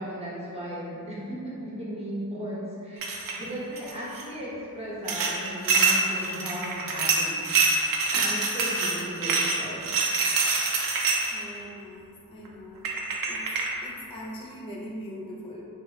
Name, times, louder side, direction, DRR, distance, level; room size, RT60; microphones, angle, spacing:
voice 1, 0.0-9.9, equal, 15° right, -8 dB, 1.0 m, -36 dB
sound 1, 3.0-3.4 3.7-4.2 5.1-11.4 12.4-12.5 12.8-13.7, right 4 dB, 65° right, 0.5 m, -25 dB
voice 2, 11.3-13.0 13.3-13.4 13.8-15.6, equal, 15° left, -3 dB, 0.3 m, -41 dB
2.9 x 2.2 x 3.3 m, 2.6 s
cardioid pair, 95°, 37 cm